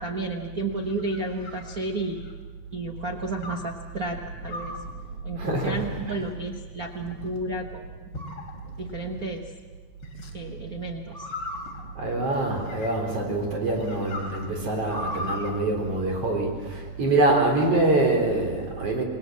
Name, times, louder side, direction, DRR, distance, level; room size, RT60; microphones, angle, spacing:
voice 1, 0.0-2.2 2.7-4.2 4.4-4.8 5.2-7.9 8.8-9.4 10.3-11.2, right 2 dB, 75° right, 3 dB, 0.8 m, -32 dB
sound 1, 0.6-2.4 3.4-3.8 4.5-4.9 5.7-6.2 6.8-7.4 8.1-8.9 10.0-10.3 11.1-13.2 13.7-15.5, left 1 dB, 40° left, 3.8 m, -38 dB
voice 2, 5.4-6.2 12.0-19.0, right 2 dB, 45° right, 2 dB, 4.8 m, -25 dB
27.5 x 20.5 x 7.5 m, 1.5 s
omnidirectional pair, 3.9 m